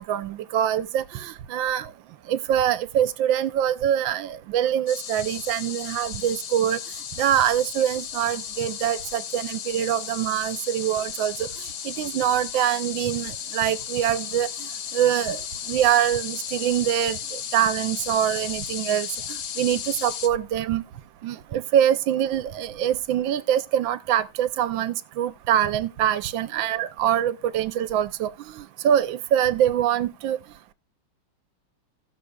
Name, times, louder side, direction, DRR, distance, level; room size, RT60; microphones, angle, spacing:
voice 1, 0.0-1.9 2.3-6.8 7.2-11.5 11.8-14.5 14.9-15.4 15.7-17.2 17.5-20.8 21.2-30.4, right 10 dB, 75° right, 1.3 m, -24 dB
sound 1, 4.9-20.3, left 9 dB, 75° left, 1.5 m, -35 dB
17.0 x 6.7 x 2.2 m
omnidirectional pair, 2.2 m